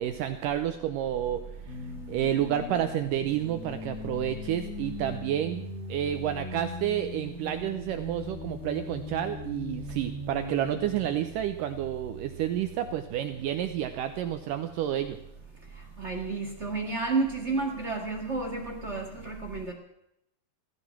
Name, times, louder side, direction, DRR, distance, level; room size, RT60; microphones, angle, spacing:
voice 1, 0.0-1.7 2.1-5.6 5.9-15.2, right 11 dB, 80° right, 8 dB, 2.0 m, -30 dB
sound 1, 1.7-11.2, left 3 dB, 90° left, 5.6 m, -40 dB
voice 2, 16.0-19.7, right 3 dB, 45° right, 2 dB, 0.8 m, -31 dB
16.0 x 14.0 x 6.1 m, 0.80 s
omnidirectional pair, 4.6 m